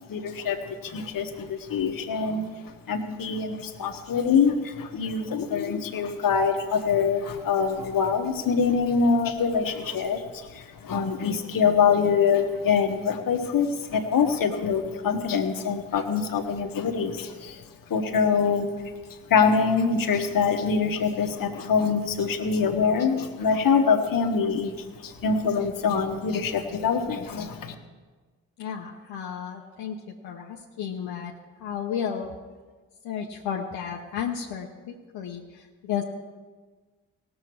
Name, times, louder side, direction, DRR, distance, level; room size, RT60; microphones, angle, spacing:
voice 1, 0.1-2.5 2.9-17.6 17.9-18.7 19.3-27.7, left 6 dB, 65° left, 5 dB, 1.4 m, -24 dB
voice 2, 28.6-30.0 30.2-31.3 31.6-32.3 33.0-36.0, left 8 dB, 80° left, -1 dB, 1.0 m, -33 dB
18.0 x 7.5 x 4.7 m, 1.4 s
hypercardioid pair, 40°, 37 cm